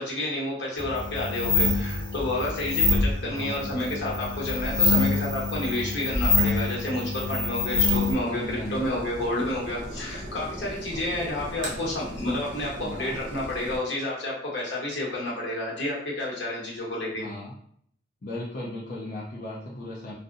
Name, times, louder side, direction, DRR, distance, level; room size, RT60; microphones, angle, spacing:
voice 1, 0.0-17.2, left 1 dB, 65° left, -4 dB, 0.9 m, -30 dB
sound 1, 0.8-8.1, left 3 dB, 35° right, 1.1 m, -25 dB
voice 2, 3.2-4.1 8.2-8.9 12.8-13.2 17.1-17.5 18.2-20.1, left 1 dB, 50° left, -6 dB, 0.5 m, -36 dB
sound 2, 7.7-13.8, right 1 dB, 75° right, 0.7 m, -38 dB
2.6 x 2.1 x 2.4 m, 0.64 s
head